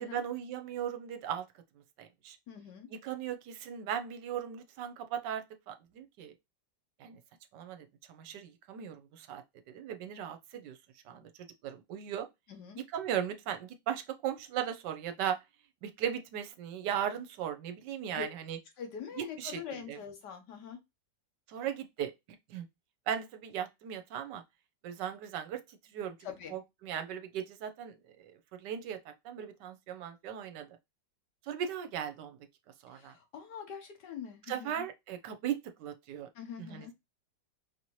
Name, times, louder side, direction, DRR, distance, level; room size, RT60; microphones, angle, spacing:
voice 1, 0.0-1.4 2.0-2.4 2.9-6.3 7.0-7.2 7.5-9.4 9.7-10.8 11.1-11.3 11.6-12.3 12.9-15.4 15.8-18.6 19.2-20.0 21.5-22.1 22.5-22.7 23.1-24.4 24.8-26.2 26.5-30.7 31.4-32.4 32.8-33.1 34.5-36.3 36.6-36.9, right 9 dB, 75° right, 1.2 m, -37 dB
voice 2, 2.5-2.9 12.5-12.8 18.1-18.3 18.8-20.8 26.2-26.6 32.9-34.8 36.3-36.9, left 7 dB, 70° left, 1.5 m, -44 dB
5.0 x 2.8 x 3.0 m
omnidirectional pair, 2.0 m